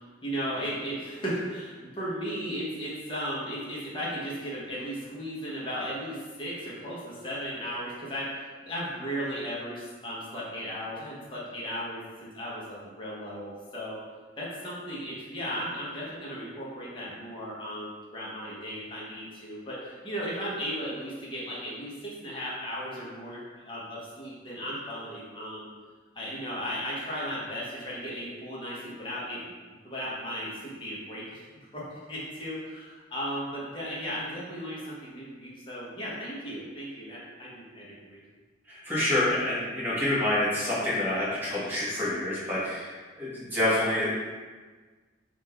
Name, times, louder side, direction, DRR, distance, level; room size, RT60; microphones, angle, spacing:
voice 1, 0.0-14.0 14.4-25.7 26.1-29.5 29.8-31.5 31.7-38.2, equal, 25° left, -7 dB, 0.9 m, -36 dB
voice 2, 38.7-44.1, left 1 dB, 10° right, -9 dB, 1.3 m, -27 dB
3.6 x 2.5 x 4.3 m, 1.4 s
head